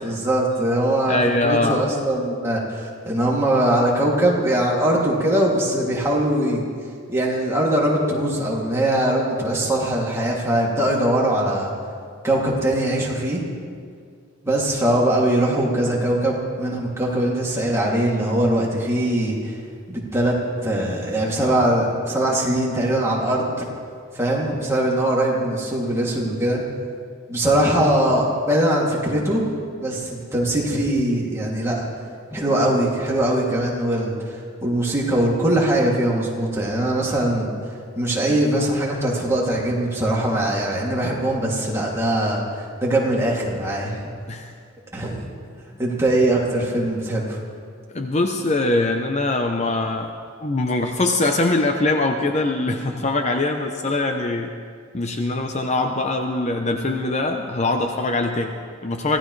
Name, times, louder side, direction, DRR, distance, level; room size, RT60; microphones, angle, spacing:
voice 1, 0.0-6.6 7.1-11.7 12.2-13.4 14.4-19.6 19.9-23.7 24.1-26.6 27.3-29.5 29.8-31.9 32.3-34.4 34.6-37.5 38.0-44.0 44.9-45.2 45.8-47.4, right 1 dB, 15° right, -5 dB, 2.6 m, -21 dB
voice 2, 1.1-1.8 44.3-44.5 47.9-50.1 50.4-54.5 54.9-59.2, left 2 dB, 35° left, 4 dB, 0.7 m, -22 dB
25.0 x 16.5 x 3.3 m, 2.2 s
head